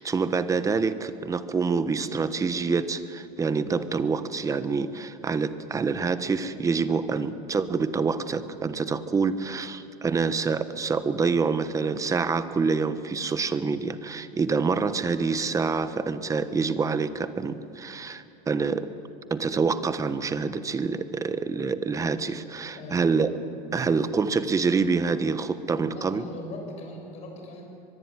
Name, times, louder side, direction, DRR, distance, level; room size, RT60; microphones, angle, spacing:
voice 1, 0.0-18.9 19.3-23.3 23.7-26.2, right 4 dB, 20° right, 12 dB, 1.2 m, -26 dB
voice 2, 22.7-23.1 25.9-27.6, left 1 dB, 40° left, 2 dB, 7.6 m, -40 dB
23.5 x 22.5 x 9.7 m, 2.7 s
supercardioid pair, 135°, 18 cm